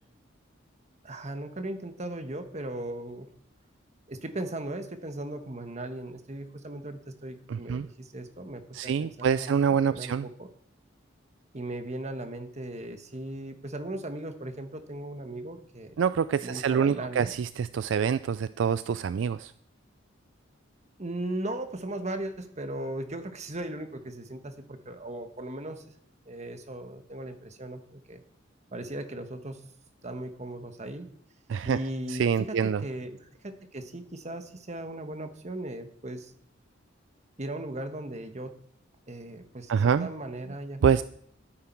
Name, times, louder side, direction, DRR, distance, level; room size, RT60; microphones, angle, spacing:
voice 1, 1.0-3.3 4.1-10.5 11.5-16.0 16.4-17.3 21.0-25.8 26.3-28.2 28.7-29.6 30.0-31.1 31.6-36.3 37.4-38.5 39.1-41.0, right 1 dB, 35° right, 7 dB, 1.4 m, -37 dB
voice 2, 7.5-7.9 8.7-10.3 16.0-19.5 31.5-31.8 32.1-32.8 39.7-40.1 40.8-41.0, right 7 dB, 70° right, 15 dB, 0.3 m, -26 dB
13.5 x 9.7 x 4.6 m, 0.64 s
head